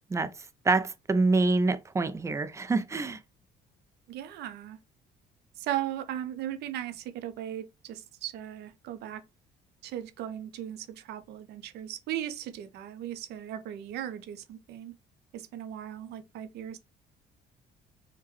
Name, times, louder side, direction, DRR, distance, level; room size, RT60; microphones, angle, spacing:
voice 1, 0.6-3.2, right 3 dB, 15° right, 0.3 m, -26 dB
voice 2, 4.1-4.8 5.6-9.2 9.8-14.9 15.3-16.8, right 11 dB, 75° right, 0.6 m, -37 dB
3.6 x 2.2 x 3.0 m
cardioid pair, 110°, 17 cm